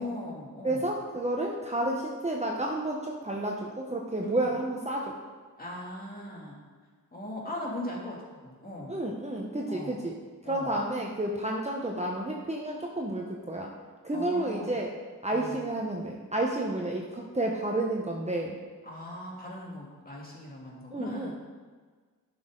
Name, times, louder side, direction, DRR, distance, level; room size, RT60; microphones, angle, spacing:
voice 1, 0.0-0.8 4.2-4.4 5.6-6.6 7.1-9.0 9.7-10.0 10.4-10.8 14.1-14.8 15.3-15.6 18.9-21.3, left 1 dB, 25° left, -4 dB, 2.7 m, -39 dB
voice 2, 0.6-5.2 8.9-10.2 10.4-13.7 14.0-14.9 15.2-18.6 20.9-21.3, right 1 dB, 20° right, -1 dB, 1.0 m, -31 dB
11.0 x 6.4 x 3.9 m, 1.5 s
cardioid pair, 65°, 36 cm